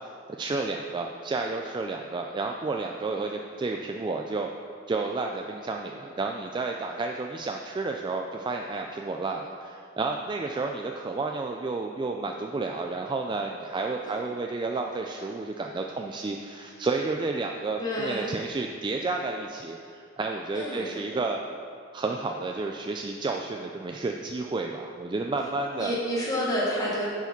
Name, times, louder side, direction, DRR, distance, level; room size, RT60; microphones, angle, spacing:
voice 1, 0.4-4.5 4.9-21.4 21.9-25.9, right 3 dB, 25° right, 2 dB, 0.3 m, -31 dB
voice 2, 17.8-18.3 20.5-21.0 25.8-27.1, equal, 20° left, -6 dB, 1.5 m, -29 dB
10.5 x 4.8 x 5.3 m, 2.3 s
head